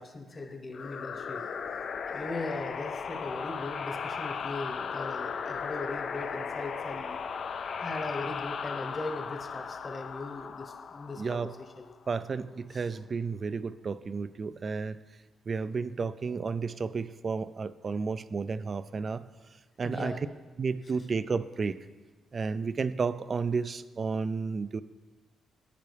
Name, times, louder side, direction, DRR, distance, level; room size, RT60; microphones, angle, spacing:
voice 1, 0.0-1.9 2.1-7.2 7.8-11.5 11.8-11.9 12.7-12.8 19.8-20.2, left 2 dB, 30° left, 5 dB, 1.0 m, -39 dB
sound 1, 0.7-12.1, left 6 dB, 55° left, 0.4 m, -37 dB
voice 2, 11.2-11.5 12.1-15.0 15.5-19.2 19.8-20.2 20.6-21.8 22.3-24.8, right 5 dB, 40° right, 15 dB, 0.3 m, -32 dB
10.5 x 9.1 x 3.4 m, 1.3 s
cardioid pair, 115°, 0 cm